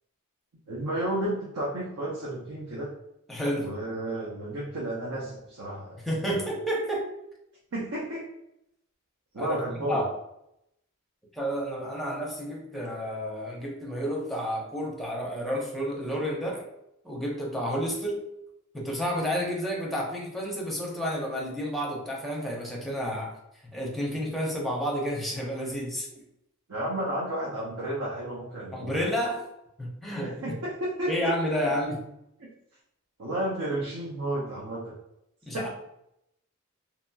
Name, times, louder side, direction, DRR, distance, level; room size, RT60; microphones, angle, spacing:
voice 1, 0.7-2.9 3.6-6.0 6.2-6.4 7.7-8.3 9.3-10.0 26.7-29.0 30.2-31.3 31.6-31.7 32.4-32.5 33.2-34.9 35.5-35.7, right 1 dB, 75° right, -4 dB, 0.7 m, -32 dB
voice 2, 3.3-3.7 6.1-7.1 9.4-9.6 9.9-10.1 11.3-16.6 17.0-18.3 18.7-23.4 23.7-26.1 28.7-29.4 29.8-30.6 31.1-32.0 35.5-35.7, equal, ahead, -2 dB, 0.7 m, -30 dB
2.9 x 2.9 x 2.2 m, 0.81 s
head